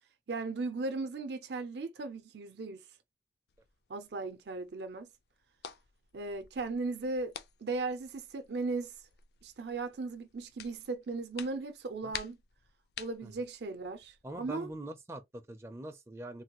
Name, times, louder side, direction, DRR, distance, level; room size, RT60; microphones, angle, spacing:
voice 1, 0.3-2.8 3.9-5.1 6.1-7.3 7.6-8.9 9.4-12.4 13.0-14.7, right 3 dB, 65° right, 0.5 m, -37 dB
sound 1, 3.5-14.8, left 8 dB, 60° left, 0.4 m, -51 dB
voice 2, 14.2-16.4, right 1 dB, 15° right, 0.4 m, -43 dB
3.2 x 2.2 x 2.8 m
head